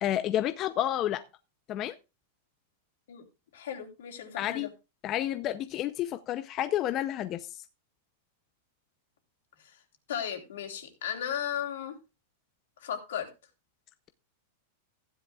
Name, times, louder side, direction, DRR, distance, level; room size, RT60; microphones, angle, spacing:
voice 1, 0.0-1.2 1.7-1.9 4.4-4.7 5.0-7.6, left 12 dB, 30° left, 0.6 m, -30 dB
voice 2, 3.5-4.7 9.6-9.8 10.1-12.0 12.8-13.3, left 9 dB, 80° left, 3.4 m, -35 dB
15.5 x 10.5 x 2.4 m
supercardioid pair, 160°, 0 cm